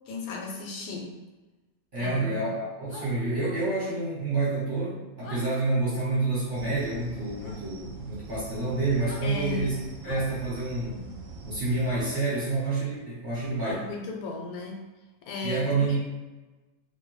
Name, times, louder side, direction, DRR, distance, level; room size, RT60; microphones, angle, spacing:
voice 1, 0.1-1.1 2.0-2.5 9.2-9.8 13.7-14.8 15.2-16.0, left 3 dB, 85° left, 0 dB, 1.1 m, -36 dB
voice 2, 1.9-9.7 10.0-11.1 11.4-13.9 15.4-16.0, right 3 dB, 40° right, -10 dB, 1.0 m, -28 dB
sound 1, 2.9-3.1 5.2-5.4 7.4-7.6 8.9-9.2 10.0-10.3 12.3-12.5 13.6-13.8, left 3 dB, 65° left, 0.7 m, -43 dB
sound 2, 6.5-12.2, right 3 dB, 75° right, 0.9 m, -43 dB
2.5 x 2.1 x 3.0 m, 1.2 s
omnidirectional pair, 1.5 m